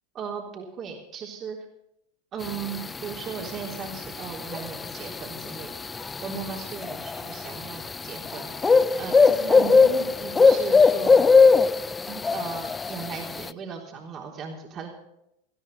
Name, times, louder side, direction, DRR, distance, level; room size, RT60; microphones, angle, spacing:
voice 1, 0.1-1.6 2.3-11.3 12.1-15.0, right 6 dB, 35° right, 0 dB, 3.6 m, -37 dB
sound 1, 2.4-13.5, left 4 dB, 15° left, 0.5 m, -21 dB
18.5 x 16.5 x 4.1 m, 0.80 s
figure-of-eight pair, 85°, 0 cm